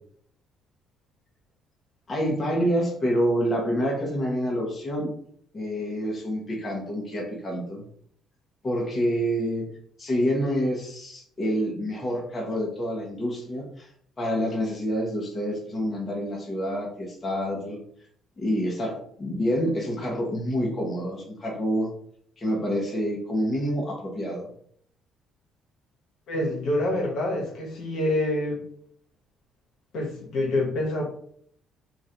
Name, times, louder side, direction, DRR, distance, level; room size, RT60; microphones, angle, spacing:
voice 1, 2.1-5.1 5.5-7.8 8.6-9.6 10.0-13.9 14.2-17.8 18.4-21.9 22.4-24.5, equal, 25° left, -2 dB, 0.9 m, -27 dB
voice 2, 26.3-28.6 29.9-31.0, left 1 dB, 65° left, -1 dB, 1.2 m, -26 dB
3.1 x 2.5 x 4.2 m, 0.63 s
cardioid pair, 140°, 0 cm